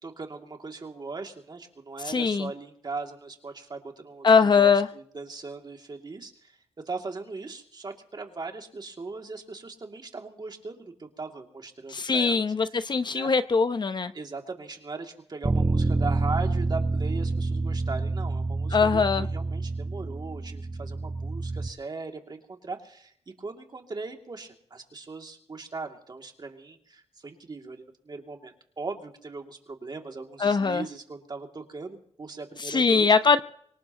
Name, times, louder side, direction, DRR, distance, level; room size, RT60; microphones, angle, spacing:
voice 1, 0.0-6.6 6.9-12.8 13.1-13.3 14.1-33.1, right 3 dB, 40° right, 3 dB, 2.6 m, -39 dB
voice 2, 2.1-2.5 4.2-4.9 11.9-14.1 18.7-19.3 30.4-30.8 32.7-33.4, left 5 dB, 45° left, 11 dB, 0.8 m, -21 dB
Bass guitar, 15.4-21.7, right 3 dB, 25° right, 1.2 m, -28 dB
25.0 x 18.5 x 3.0 m, 0.66 s
wide cardioid pair, 95°, 11 cm